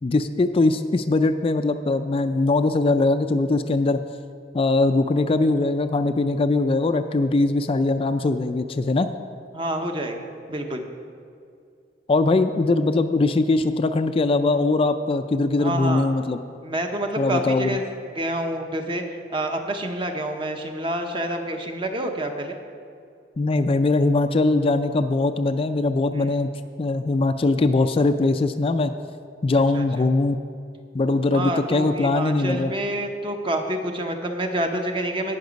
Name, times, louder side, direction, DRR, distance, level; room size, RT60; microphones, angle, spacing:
voice 1, 0.0-4.0 4.5-9.1 12.1-16.4 17.2-17.8 23.4-26.5 26.8-28.9 29.4-30.4 30.9-32.7, left 2 dB, 35° left, 9 dB, 0.4 m, -21 dB
voice 2, 9.5-10.8 15.6-16.1 16.6-17.8 18.1-19.0 19.3-22.6 26.1-26.3 29.7-29.8 31.3-35.4, right 1 dB, 30° right, 4 dB, 0.9 m, -28 dB
17.0 x 5.9 x 5.2 m, 2.3 s
head